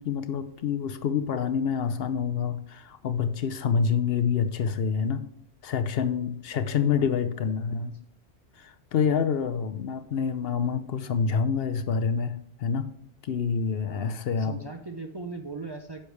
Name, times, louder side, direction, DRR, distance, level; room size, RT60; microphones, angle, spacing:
voice 1, 0.0-5.2 5.6-7.9 8.6-12.9 13.2-14.6, left 6 dB, 65° left, 11 dB, 0.8 m, -27 dB
voice 2, 6.7-7.5 13.8-16.0, right 3 dB, 30° right, 4 dB, 0.5 m, -40 dB
9.9 x 6.6 x 3.2 m, 0.65 s
omnidirectional pair, 1.1 m